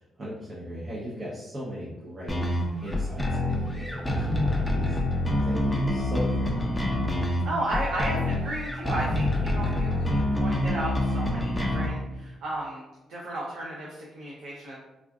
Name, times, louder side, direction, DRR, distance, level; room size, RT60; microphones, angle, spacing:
voice 1, 0.0-6.9, equal, 35° right, -8 dB, 0.8 m, -38 dB
sound 1, 2.3-11.9, left 1 dB, 10° left, 0.5 m, -27 dB
voice 2, 7.4-12.8 13.1-14.8, right 1 dB, 85° right, -5 dB, 0.6 m, -33 dB
3.5 x 2.4 x 2.3 m, 1.0 s
cardioid pair, 110°, 0 cm